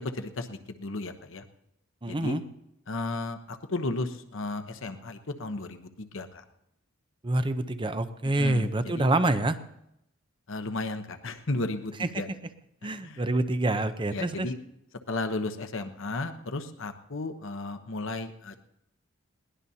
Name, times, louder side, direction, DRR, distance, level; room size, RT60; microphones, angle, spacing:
voice 1, 0.0-1.4 2.1-2.4 2.9-6.4 8.4-9.1 10.5-12.3 13.0-13.2 14.1-14.6 15.1-18.6, left 2 dB, 65° left, 8 dB, 1.0 m, -34 dB
voice 2, 2.0-2.4 7.2-9.6 12.0-12.1 12.8-14.5, right 2 dB, 25° right, 10 dB, 0.7 m, -26 dB
21.5 x 18.0 x 2.8 m, 0.82 s
head